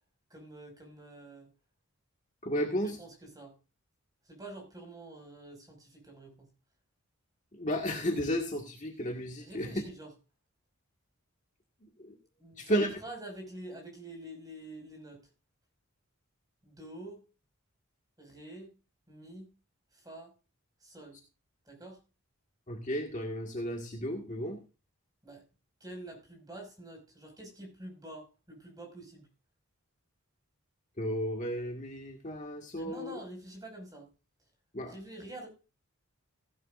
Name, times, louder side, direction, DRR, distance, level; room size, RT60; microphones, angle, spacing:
voice 1, 0.3-1.5 2.6-3.5 4.2-6.5 9.4-10.1 12.4-15.2 16.6-17.2 18.2-18.7 19.1-19.5 19.9-20.3 20.8-21.2 21.7-22.0 25.2-25.4 25.8-29.3 32.8-34.1 34.8-35.5, right 1 dB, 15° right, 2 dB, 5.6 m, -47 dB
voice 2, 2.4-3.0 7.6-9.7 12.6-12.9 22.7-24.6 31.0-33.2 34.7-34.9, equal, 35° left, 1 dB, 1.8 m, -33 dB
16.0 x 11.0 x 2.5 m, 0.30 s
head